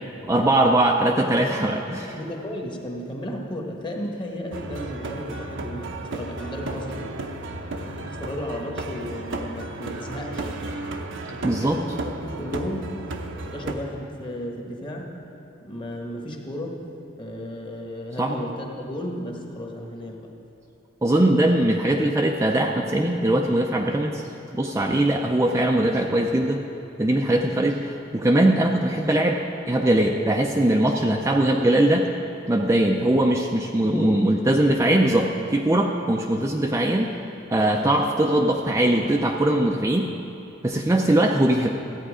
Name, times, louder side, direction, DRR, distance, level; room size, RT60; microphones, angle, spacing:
voice 1, 0.2-2.2 11.4-11.8 18.2-18.3 21.0-24.2 24.5-26.6 27.0-29.4 29.7-32.1 32.5-37.1 37.5-40.1 40.6-41.7, right 1 dB, 15° right, 1 dB, 0.4 m, -21 dB
voice 2, 2.1-7.2 7.9-10.5 11.3-11.9 12.2-12.9 13.5-15.1 15.6-16.8 17.2-20.3 33.9-34.2, equal, 25° left, 0 dB, 1.3 m, -34 dB
sound 1, 4.5-13.8, right 2 dB, 65° right, 0.7 m, -34 dB
13.5 x 9.0 x 4.9 m, 2.8 s
head